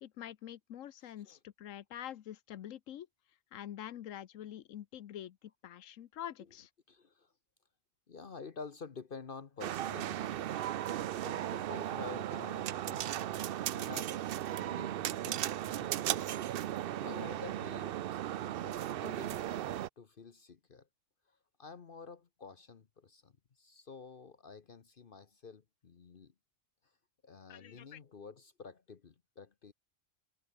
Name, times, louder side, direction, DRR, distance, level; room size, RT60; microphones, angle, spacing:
voice 1, 0.0-3.1 3.5-6.7 27.5-28.0, left 11 dB, 85° left, 1.2 m, -46 dB
voice 2, 6.9-7.3 8.1-10.4 11.1-13.4 13.7-14.2 14.6-16.4 16.6-18.2 18.6-20.9 21.6-23.3 23.6-26.3 27.2-29.7, left 5 dB, 45° left, 1.1 m, -50 dB
sound 1, 9.6-19.9, right 12 dB, 60° right, 0.6 m, -36 dB
omnidirectional pair, 1.3 m